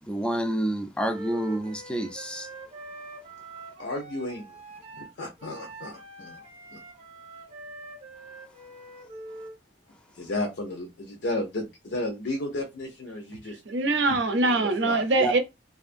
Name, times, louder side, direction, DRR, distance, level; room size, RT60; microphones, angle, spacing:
voice 1, 0.0-2.5 15.2-15.3, right 1 dB, 5° left, 0.3 m, -28 dB
Wind instrument woodwind instrument, 1.0-9.6, right 2 dB, 35° right, 0.7 m, -44 dB
voice 2, 3.8-4.6 4.9-6.4 6.7-6.8 10.2-13.6 14.5-15.0, left 2 dB, 75° left, 0.6 m, -33 dB
voice 3, 13.4-15.4, right 2 dB, 80° right, 0.6 m, -23 dB
2.6 x 2.4 x 2.5 m
head